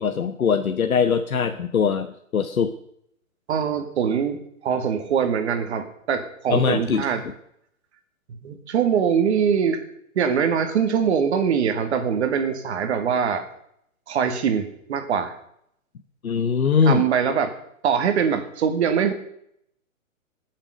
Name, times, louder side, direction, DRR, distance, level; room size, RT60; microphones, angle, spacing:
voice 1, 0.0-2.1 2.3-2.7 6.5-7.1 16.2-17.0, left 6 dB, 85° left, 8 dB, 1.2 m, -21 dB
voice 2, 3.5-4.4 4.6-7.2 8.4-9.8 10.2-13.5 14.1-15.3 16.9-17.5 17.8-19.1, right 7 dB, 50° right, 7 dB, 2.3 m, -23 dB
20.0 x 7.5 x 6.4 m, 0.72 s
hypercardioid pair, 140°, 41 cm